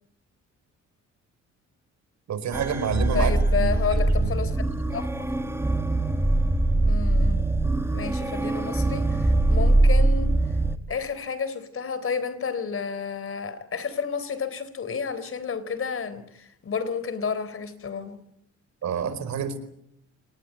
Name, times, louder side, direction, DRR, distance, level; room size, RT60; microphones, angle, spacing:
voice 1, 2.3-4.0 18.8-19.6, right 7 dB, 65° right, 4.8 m, -28 dB
sound 1, 2.5-10.8, right 2 dB, 10° right, 1.7 m, -22 dB
voice 2, 3.1-5.5 6.8-7.5 7.9-10.6 10.9-18.2, left 6 dB, 45° left, 3.7 m, -31 dB
26.5 x 19.5 x 9.2 m
cardioid pair, 90°, 30 cm